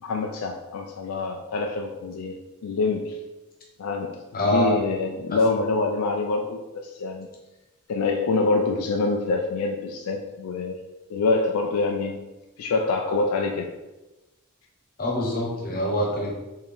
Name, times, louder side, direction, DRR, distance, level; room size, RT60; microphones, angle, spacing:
voice 1, 0.0-3.2 3.8-7.3 7.9-10.8 11.1-12.3 12.6-13.7, left 3 dB, 80° left, 3 dB, 0.4 m, -26 dB
voice 2, 4.3-4.8 5.3-5.4 15.0-16.3, equal, 45° left, -2 dB, 1.0 m, -24 dB
4.3 x 2.7 x 3.5 m, 1.1 s
head